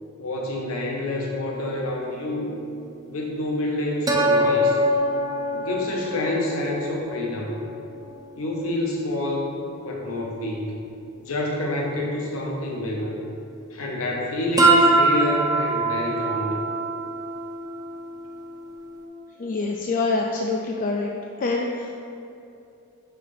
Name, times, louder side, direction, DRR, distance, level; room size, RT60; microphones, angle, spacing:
voice 1, 0.2-2.5 3.1-4.8 5.5-7.6 8.4-9.5 9.8-10.7 11.2-13.2 13.7-16.6, left 1 dB, 80° left, -2 dB, 0.9 m, -27 dB
sound 1, 1.6-1.7 4.1-7.2 7.7-7.8 14.6-19.0, right 1 dB, 20° right, 0.6 m, -23 dB
voice 2, 19.4-21.1 21.4-22.0, left 3 dB, 40° left, 0 dB, 0.3 m, -25 dB
5.7 x 3.7 x 5.7 m, 2.7 s
head